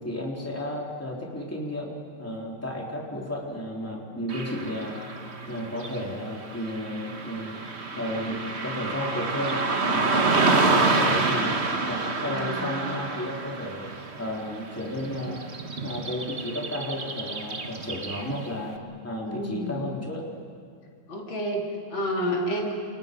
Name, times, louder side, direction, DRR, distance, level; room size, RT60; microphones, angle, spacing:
voice 1, 0.0-5.0 5.5-7.5 8.0-10.4 10.8-11.6 11.9-13.9 14.2-15.4 15.8-18.7 19.0-20.3, left 1 dB, 5° left, -3 dB, 3.7 m, -33 dB
Car passing by / Traffic noise roadway noise, 4.3-18.6, right 3 dB, 35° right, 1.6 m, -28 dB
voice 2, 10.3-11.0 12.3-12.7 19.3-19.8 21.1-22.7, equal, 85° left, -1 dB, 4.1 m, -30 dB
30.0 x 28.0 x 5.3 m, 2.2 s
omnidirectional pair, 2.1 m